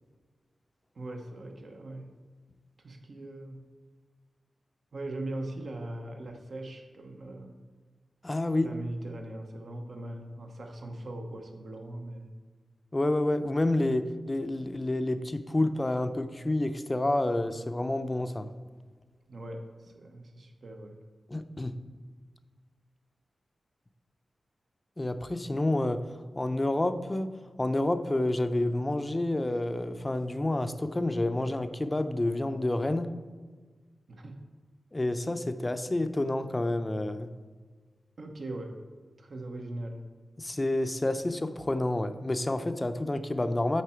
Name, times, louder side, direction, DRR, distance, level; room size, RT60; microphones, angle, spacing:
voice 1, 0.9-2.2 2.8-3.7 4.9-7.6 8.6-12.3 19.3-21.0 34.1-34.4 38.2-38.8 39.2-40.1, right 1 dB, 65° right, 3 dB, 1.0 m, -40 dB
voice 2, 8.2-8.7 12.9-18.5 21.3-21.8 25.0-26.0 26.3-27.3 27.6-33.1 34.9-37.3 40.4-43.8, left 1 dB, 25° left, 9 dB, 0.5 m, -29 dB
8.3 x 4.4 x 4.4 m, 1.4 s
wide cardioid pair, 75°, 0 cm